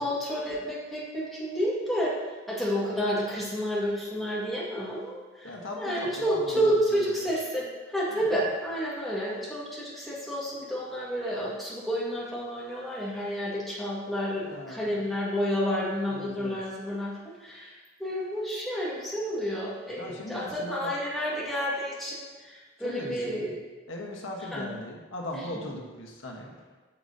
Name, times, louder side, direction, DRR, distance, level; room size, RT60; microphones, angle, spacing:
voice 1, 0.0-2.1 2.5-23.6 24.5-24.7 25.4-25.5, equal, ahead, -7 dB, 1.9 m, -30 dB
voice 2, 5.4-6.7 6.9-7.0 8.1-8.3 14.4-14.9 16.1-16.6 20.0-20.9 22.8-23.5 23.9-26.8, left 1 dB, 90° left, -1 dB, 1.3 m, -38 dB
8.8 x 6.6 x 2.8 m, 1.3 s
head